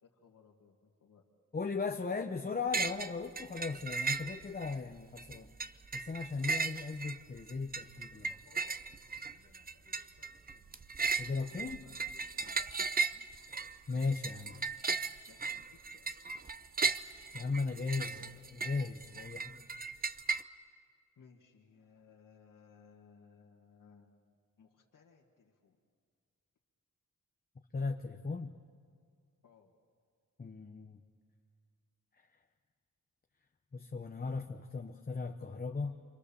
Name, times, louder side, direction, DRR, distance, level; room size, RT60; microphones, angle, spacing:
voice 1, 0.0-1.2 2.1-2.4 8.3-10.8 11.1-11.3 11.7-12.6 13.0-13.3 14.7-14.8 15.3-16.4 17.8-18.4 21.1-25.8 29.4-29.7, left 6 dB, 80° left, -2 dB, 1.8 m, -63 dB
voice 2, 1.5-5.5 5.9-8.3 11.2-11.8 13.5-14.6 17.3-18.2 18.5-19.6 27.7-28.6 30.4-31.0 33.7-36.0, left 4 dB, 30° left, 5 dB, 0.9 m, -37 dB
sound 1, 2.7-4.7 5.2-20.4, right 4 dB, 30° right, 0.6 m, -36 dB
28.5 x 25.5 x 7.0 m, 2.1 s
wide cardioid pair, 110°, 32 cm